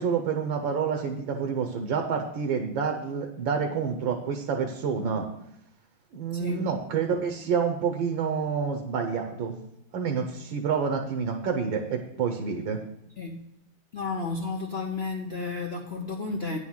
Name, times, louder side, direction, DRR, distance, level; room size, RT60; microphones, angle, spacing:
voice 1, 0.0-5.3 6.1-9.6 9.9-12.8, right 6 dB, 70° right, 4 dB, 1.6 m, -28 dB
voice 2, 6.3-6.7 13.2-13.5 13.9-16.6, left 3 dB, 60° left, 1 dB, 0.6 m, -32 dB
9.8 x 4.9 x 7.1 m, 0.78 s
omnidirectional pair, 2.2 m